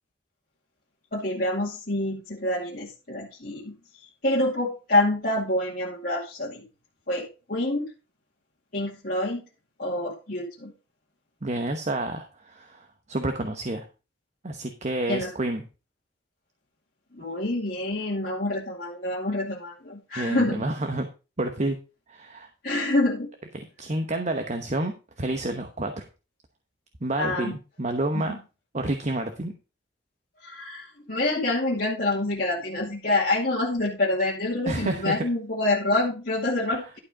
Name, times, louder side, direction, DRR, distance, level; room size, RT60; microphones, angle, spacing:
voice 1, 1.1-3.7 4.2-6.6 7.1-7.9 8.7-9.4 9.8-10.7 15.1-15.3 17.1-20.6 22.6-23.3 27.1-27.6 28.1-28.3 30.4-37.0, left 2 dB, 55° left, -5 dB, 2.3 m, -27 dB
voice 2, 11.4-13.9 14.4-15.6 20.2-21.1 21.4-21.8 22.1-22.5 23.5-26.0 27.0-28.4 28.7-29.5 34.7-35.2, right 2 dB, 40° right, 6 dB, 1.0 m, -29 dB
11.5 x 4.9 x 5.1 m, 0.31 s
head